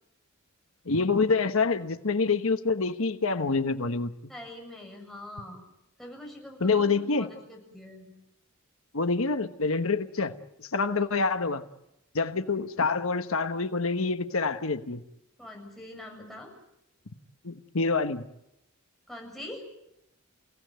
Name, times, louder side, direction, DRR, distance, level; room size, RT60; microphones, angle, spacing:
voice 1, 0.9-4.1 6.6-7.3 8.9-11.6 12.1-15.0 17.4-18.2, left 4 dB, 70° left, 9 dB, 1.2 m, -26 dB
voice 2, 4.3-5.6 6.0-8.1 15.4-16.5 19.1-19.6, left 1 dB, ahead, 0 dB, 7.6 m, -43 dB
30.0 x 17.5 x 9.3 m, 0.86 s
head